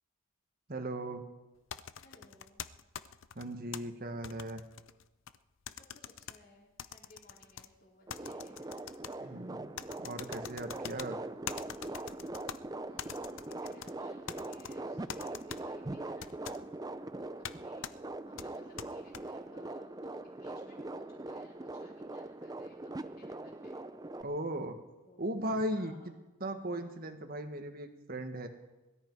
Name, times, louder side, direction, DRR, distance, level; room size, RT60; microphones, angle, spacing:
voice 1, 0.7-1.2 3.3-4.6 9.2-9.7 10.0-11.2 24.2-24.8 25.2-25.9 26.4-28.5, right 1 dB, 45° right, 6 dB, 1.5 m, -37 dB
sound 1, 1.7-3.8 4.2-5.4 5.7-6.4 6.8-7.7 8.1-9.1 9.8-11.1 11.5-12.6 13.0-13.9 14.3-14.7 15.1-15.6 16.2-16.6 17.4-17.6 17.8-17.9 18.4-19.2, left 8 dB, 65° left, 0.5 m, -43 dB
voice 2, 2.0-2.7 5.7-9.5 12.8-18.0 18.2-23.8 24.1-24.3 25.0-26.1 26.8-27.0, left 1 dB, 45° left, -3 dB, 4.3 m, -61 dB
sound 2, 8.1-24.2, right 2 dB, 15° right, 0.5 m, -42 dB
22.0 x 13.5 x 4.7 m, 1.1 s
head